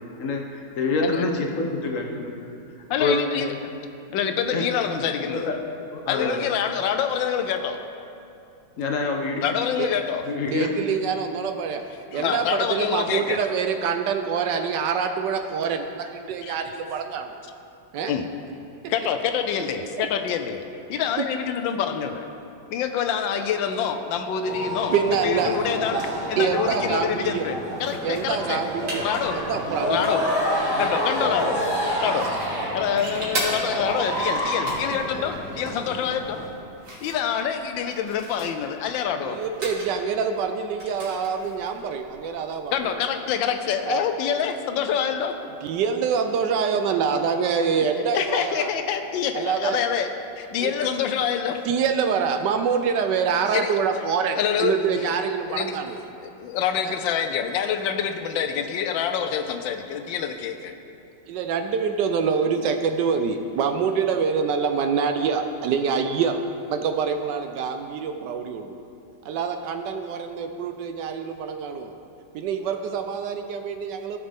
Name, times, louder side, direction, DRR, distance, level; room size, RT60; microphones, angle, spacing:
voice 1, 0.0-2.4 3.0-3.5 4.5-4.6 5.2-5.5 5.9-6.4 8.8-9.4 10.3-10.8 12.1-12.2, left 3 dB, 55° left, 2 dB, 1.0 m, -26 dB
voice 2, 2.9-3.7 4.1-5.5 6.1-7.8 9.4-10.2 12.1-13.4 16.4-16.5 18.1-18.3 18.9-20.6 20.9-22.3 22.7-24.9 25.2-28.6 29.0-29.4 29.9-30.2 30.8-31.6 32.0-32.3 32.7-36.4 37.0-39.4 42.7-45.3 48.0-51.6 53.5-53.7 54.4-55.1 55.5-55.7 56.2-60.7, left 8 dB, 85° left, 7 dB, 1.4 m, -26 dB
voice 3, 10.5-11.8 12.1-17.4 17.9-18.1 19.9-20.0 21.2-21.3 24.9-25.6 26.3-27.5 28.0-29.0 29.3-30.0 39.2-43.0 43.9-44.1 45.6-48.7 49.3-49.8 50.6-51.0 51.6-56.0 56.8-57.0 61.3-66.4 66.7-68.8 69.2-71.9 72.3-74.2, right 6 dB, 75° right, 6 dB, 1.2 m, -25 dB
sound 1, 24.4-36.5, equal, 25° right, 2.8 m, -28 dB
Playing around with cassette and box, 27.8-42.9, right 1 dB, 45° right, 2.2 m, -38 dB
15.0 x 6.6 x 3.5 m, 2.6 s
omnidirectional pair, 2.0 m